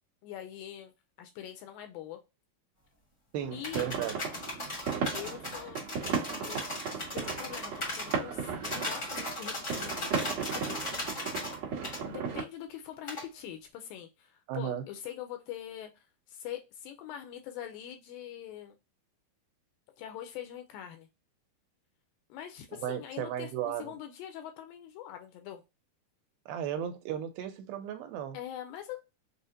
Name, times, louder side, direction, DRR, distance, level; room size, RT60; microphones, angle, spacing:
voice 1, 0.2-0.9 1.2-2.2 3.5-3.9 5.1-5.8 6.3-6.6 7.0-10.2 10.5-11.2 12.1-18.8 20.0-21.1 22.3-25.6 28.3-29.0, left 11 dB, 80° left, 2.1 m, -43 dB
voice 2, 3.3-4.1 14.5-14.8 22.8-23.9 26.5-28.4, right 10 dB, 80° right, 2.5 m, -35 dB
sound 1, 3.4-12.4, right 6 dB, 60° right, 1.9 m, -36 dB
sound 2, 3.6-8.2 8.6-11.6 11.8-12.0 13.1-13.2, left 1 dB, 55° left, 0.7 m, -37 dB
6.2 x 2.1 x 2.6 m
omnidirectional pair, 4.3 m